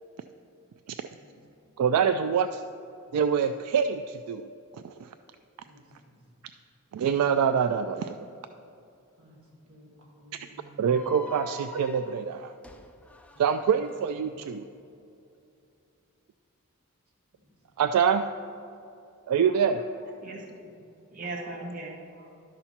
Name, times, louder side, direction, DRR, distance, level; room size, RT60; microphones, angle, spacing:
voice 1, 1.2-1.5 5.6-6.2 9.2-9.4 9.7-11.1 13.3-13.8 14.2-14.4 17.4-17.5, equal, 70° right, -2 dB, 2.2 m, -55 dB
voice 2, 1.8-2.6 3.1-4.5 4.8-5.1 6.9-8.2 10.8-12.5 13.4-14.6 17.8-18.2 19.3-19.8, right 7 dB, 85° right, 9 dB, 0.3 m, -25 dB
sound 1, 10.8-14.0, left 1 dB, 5° left, 0.4 m, -44 dB
voice 3, 19.5-20.8 21.1-22.3, right 2 dB, 35° right, -1 dB, 0.9 m, -40 dB
11.5 x 4.3 x 5.8 m, 2.6 s
head